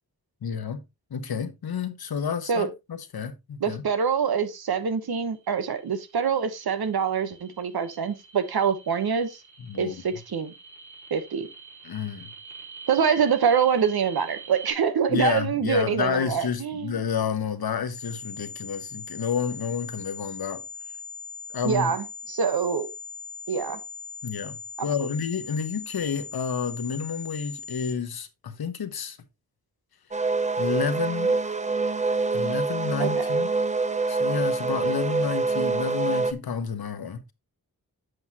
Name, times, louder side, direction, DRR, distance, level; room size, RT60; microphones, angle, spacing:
voice 1, 0.4-0.8 1.1-3.8 9.6-10.0 11.8-12.3 15.1-20.6 21.5-21.9 24.2-24.6 24.8-29.2 30.6-31.3 32.3-33.5 34.1-37.3, left 6 dB, 80° left, 1.2 m, -30 dB
voice 2, 3.6-9.4 9.8-10.5 11.1-11.5 12.9-17.0 21.6-22.9 23.5-23.8 33.0-33.3, right 6 dB, 80° right, 1.2 m, -25 dB
sound 1, 5.3-14.7, right 5 dB, 50° right, 4.1 m, -47 dB
sound 2, 17.9-27.9, left 4 dB, 35° left, 1.0 m, -40 dB
sound 3, 30.1-36.3, right 3 dB, 20° right, 0.7 m, -25 dB
8.0 x 7.9 x 2.9 m
wide cardioid pair, 75°, 36 cm